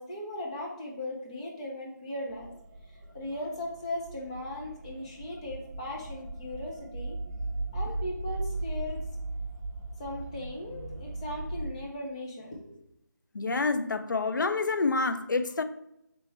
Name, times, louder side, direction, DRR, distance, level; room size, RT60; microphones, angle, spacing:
voice 1, 0.0-2.5 3.1-7.2 7.7-9.0 10.0-12.8, left 1 dB, 20° left, -2 dB, 0.6 m, -38 dB
sound 1, 2.3-11.7, right 2 dB, 25° right, 1.1 m, -38 dB
voice 2, 13.4-15.6, left 3 dB, 85° left, 10 dB, 0.4 m, -27 dB
3.4 x 3.0 x 4.0 m, 0.81 s
figure-of-eight pair, 165°, 10 cm